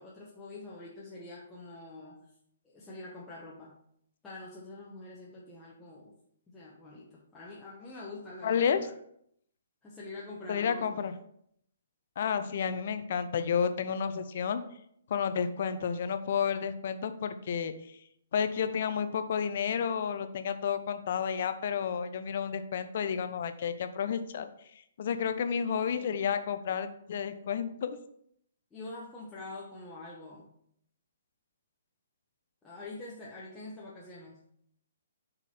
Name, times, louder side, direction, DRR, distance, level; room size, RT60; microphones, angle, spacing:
voice 1, 0.0-2.2 2.6-3.7 4.2-6.1 6.5-8.9 9.8-10.9 25.6-25.9 28.7-30.5 32.6-34.4, left 2 dB, 10° left, -6 dB, 1.0 m, -45 dB
voice 2, 8.4-8.9 10.5-11.1 12.2-14.6 15.1-18.0 18.3-24.5 25.0-28.0, left 7 dB, 50° left, 9 dB, 0.6 m, -31 dB
7.1 x 4.1 x 4.2 m, 0.70 s
figure-of-eight pair, 125°, 0 cm